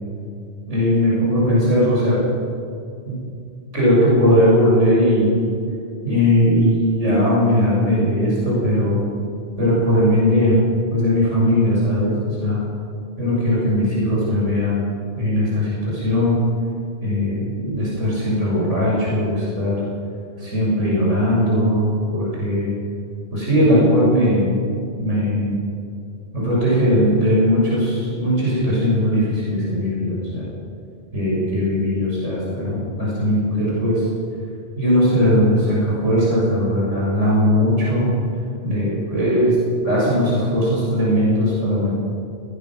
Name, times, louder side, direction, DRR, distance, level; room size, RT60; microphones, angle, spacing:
voice 1, 0.7-2.2 3.1-3.2 3.7-5.4 6.0-9.0 9.6-10.5 10.9-12.6 13.2-14.9 15.2-16.4 17.0-19.8 20.4-22.7 23.3-24.5 25.0-25.6 26.3-30.5 31.1-34.0 34.8-38.1 38.6-39.6 39.8-41.9, equal, 90° right, -7 dB, 7.6 m, -19 dB
21.0 x 20.0 x 6.3 m, 2.5 s
omnidirectional pair, 1.2 m